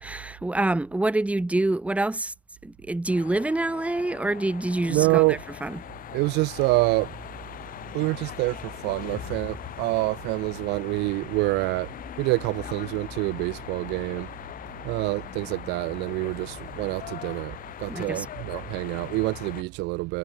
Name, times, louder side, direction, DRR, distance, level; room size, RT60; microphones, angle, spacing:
voice 1, 0.0-2.3 2.6-5.8 17.9-18.3, right 2 dB, 10° right, 0.8 m, -26 dB
sound 1, 3.1-19.6, left 11 dB, 55° left, 2.2 m, -40 dB
voice 2, 4.9-5.4 6.1-7.1 7.9-11.9 12.2-14.3 14.8-20.2, right 23 dB, 90° right, 0.4 m, -26 dB
sound 2, 9.3-17.4, right 8 dB, 45° right, 4.5 m, -59 dB
cardioid pair, 110°, 17 cm